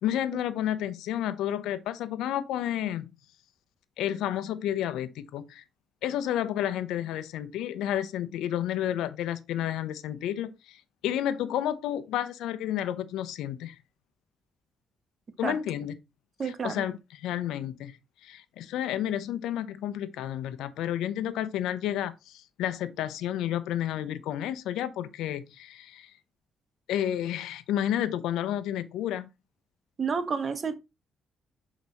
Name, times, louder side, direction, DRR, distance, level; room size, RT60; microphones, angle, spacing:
voice 1, 0.0-3.1 4.0-5.6 6.0-13.8 15.4-15.9 16.4-26.1 26.9-29.3, left 11 dB, 90° left, 0.8 m, -31 dB
voice 2, 16.4-16.8 30.0-30.8, right 5 dB, 40° right, 1.3 m, -30 dB
6.2 x 5.1 x 4.1 m
cardioid pair, 90°, 0 cm